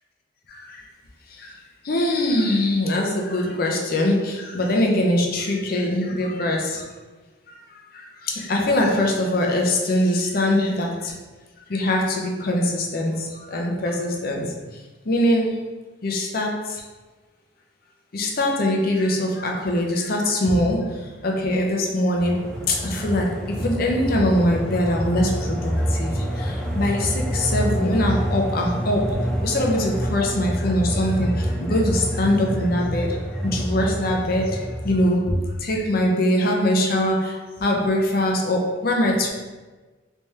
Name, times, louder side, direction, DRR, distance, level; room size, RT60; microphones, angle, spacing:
voice 1, 1.9-6.8 8.3-10.9 11.7-13.2 13.5-14.5 15.1-15.6 16.0-16.5 18.1-20.9 21.2-23.3 23.6-25.7 26.0-26.1 26.8-29.1 29.4-31.3 31.6-33.1 33.4-34.6 34.8-35.3 35.6-37.3 37.6-39.3, left 1 dB, 50° left, 0 dB, 0.6 m, -22 dB
sound 1, 22.1-35.2, equal, 5° left, 0.4 m, -27 dB
3.4 x 3.3 x 2.7 m, 1.3 s
head